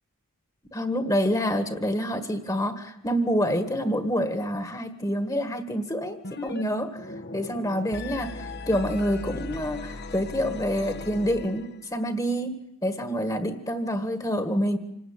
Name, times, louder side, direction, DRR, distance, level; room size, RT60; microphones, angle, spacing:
voice 1, 0.7-7.0 7.3-12.5 12.8-14.8, equal, 15° left, 8 dB, 1.7 m, -27 dB
sound 1, 6.2-6.6 6.9-11.9, left 2 dB, 50° left, 1.2 m, -38 dB
27.0 x 18.5 x 8.9 m, 0.83 s
head